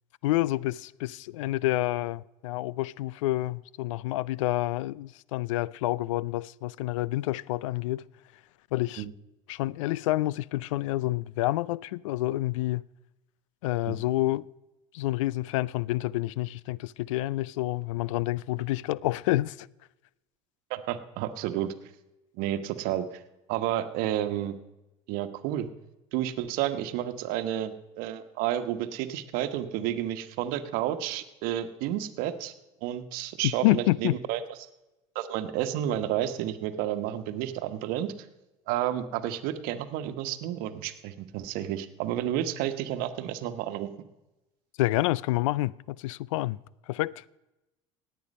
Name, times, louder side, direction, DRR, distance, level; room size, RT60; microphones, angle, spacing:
voice 1, 0.2-8.0 8.7-9.0 9.5-12.8 13.6-14.5 14.9-19.7 33.6-34.2 44.8-46.6 46.9-47.2, left 17 dB, 85° left, 0.4 m, -28 dB
voice 2, 20.7-21.7 22.4-23.2 23.5-24.6 25.1-25.7 26.1-32.5 32.8-34.7 35.1-38.1 38.7-43.9, right 12 dB, 70° right, 1.2 m, -31 dB
18.0 x 8.8 x 5.3 m
supercardioid pair, 90°, 16 cm